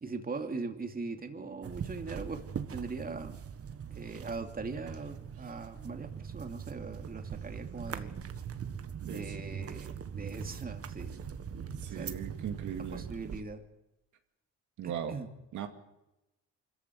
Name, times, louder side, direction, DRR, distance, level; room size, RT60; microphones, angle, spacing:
voice 1, 0.0-3.4 3.9-8.1 9.0-11.2 12.0-12.2 12.9-13.6 14.8-15.3, right 4 dB, 30° right, 5 dB, 2.8 m, -40 dB
sound 1, 1.6-13.4, right 7 dB, 50° right, 1.7 m, -41 dB
voice 2, 9.0-9.4 11.8-13.1 14.8-15.2 15.5-15.7, right 8 dB, 75° right, 5 dB, 2.3 m, -38 dB
25.0 x 14.5 x 9.5 m, 0.95 s
cardioid pair, 90°, 30 cm